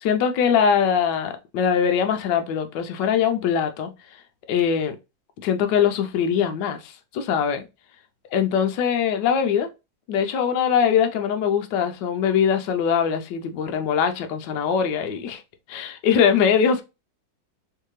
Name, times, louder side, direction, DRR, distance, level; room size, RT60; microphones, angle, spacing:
voice 1, 0.0-3.9 4.5-5.0 5.4-7.6 8.3-9.7 10.1-15.4 15.7-16.8, left 7 dB, 75° left, 1.3 m, -22 dB
3.5 x 3.2 x 3.1 m
omnidirectional pair, 2.0 m